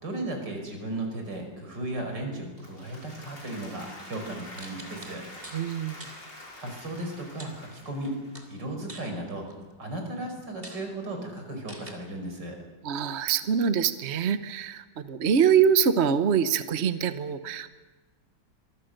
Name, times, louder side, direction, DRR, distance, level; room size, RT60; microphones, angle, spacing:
voice 1, 0.0-5.2 6.6-8.2 8.5-9.5 9.8-12.6, right 1 dB, 75° right, 3 dB, 5.7 m, -35 dB
Applause, 2.4-8.6, left 1 dB, 85° left, 6.8 m, -46 dB
sound 1, 4.6-5.7 6.0-6.2 7.4-8.1 8.4-9.7 10.2-10.3 10.6-10.9 11.7-11.9, right 2 dB, 30° right, 3.3 m, -46 dB
voice 2, 5.5-6.0 12.8-17.7, right 7 dB, 45° right, 11 dB, 1.0 m, -24 dB
25.0 x 23.5 x 6.6 m, 1.2 s
omnidirectional pair, 1.9 m